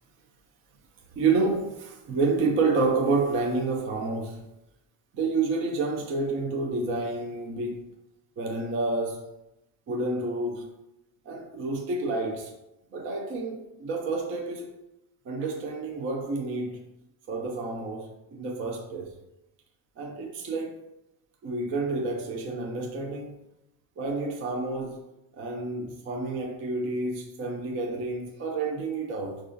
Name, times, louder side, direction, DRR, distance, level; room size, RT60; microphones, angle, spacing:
voice 1, 1.2-4.4 5.1-7.9 8.4-9.2 9.9-10.7 11.3-12.5 12.9-14.7 15.3-16.8 17.3-19.1 20.0-20.7 21.4-23.3 24.0-25.0 25.3-29.4, right 3 dB, 30° right, 0.3 m, -29 dB
4.7 x 2.4 x 2.5 m
supercardioid pair, 120°, 47 cm